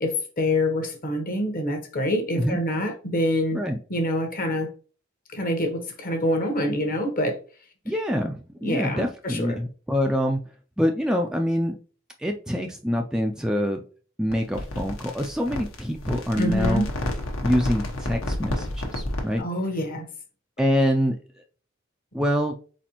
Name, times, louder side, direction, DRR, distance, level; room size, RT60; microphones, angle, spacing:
voice 1, 0.0-3.6 3.9-4.7 5.3-7.4 8.6-9.6 16.4-16.9 19.4-20.1, left 1 dB, 45° left, 4 dB, 1.0 m, -26 dB
voice 2, 7.9-10.5 10.8-11.8 12.2-13.8 14.2-16.9 17.4-19.5 20.6-21.2 22.1-22.5, equal, 5° right, 3 dB, 0.3 m, -25 dB
sound 1, 14.3-19.4, left 1 dB, 70° left, 1.0 m, -30 dB
4.2 x 4.1 x 2.9 m, 0.39 s
head